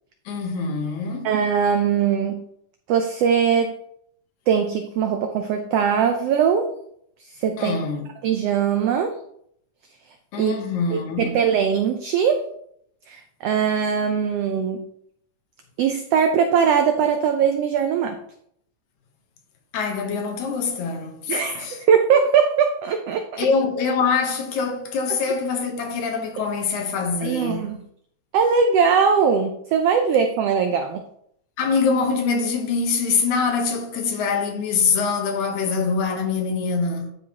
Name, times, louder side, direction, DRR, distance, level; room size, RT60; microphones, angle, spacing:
voice 1, 0.3-1.3 7.6-8.1 10.3-11.4 19.7-21.8 23.4-27.7 31.6-37.1, left 5 dB, 75° left, 2.4 m, -24 dB
voice 2, 1.2-2.5 2.9-3.8 4.5-6.7 7.4-7.8 8.2-9.2 10.4-10.5 10.9-12.5 13.1-14.9 15.8-18.2 21.3-23.5 27.2-27.8 28.3-31.0, right 7 dB, 85° right, 1.3 m, -21 dB
11.0 x 4.7 x 2.8 m
omnidirectional pair, 3.4 m